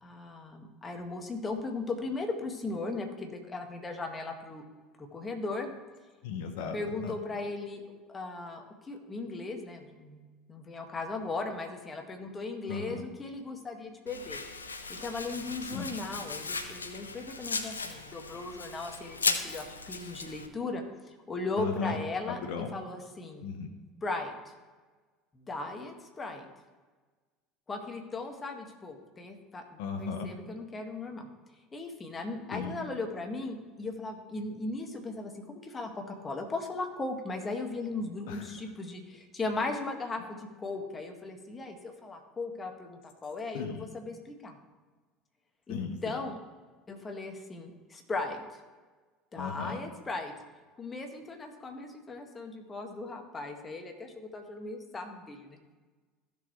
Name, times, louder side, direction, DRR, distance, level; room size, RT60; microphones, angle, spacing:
voice 1, 0.0-4.6 5.0-5.7 6.7-7.8 8.1-14.4 14.9-23.4 24.0-24.5 25.3-26.5 27.7-31.3 31.7-44.6 45.7-46.4 46.9-48.4 49.3-50.3 50.8-55.6, left 3 dB, 25° left, 4 dB, 1.8 m, -37 dB
voice 2, 6.2-6.8 7.0-7.1 12.7-13.0 15.7-15.9 21.6-22.0 22.3-22.7 23.4-23.7 29.8-30.3 32.5-32.7 38.3-38.5 43.5-43.9 45.7-46.2 49.4-49.8, left 5 dB, 65° left, 5 dB, 1.0 m, -36 dB
Domestic sounds home sounds, 14.1-20.5, left 4 dB, 90° left, 0.6 m, -36 dB
15.0 x 6.7 x 3.2 m, 1.3 s
hypercardioid pair, 70°, 0 cm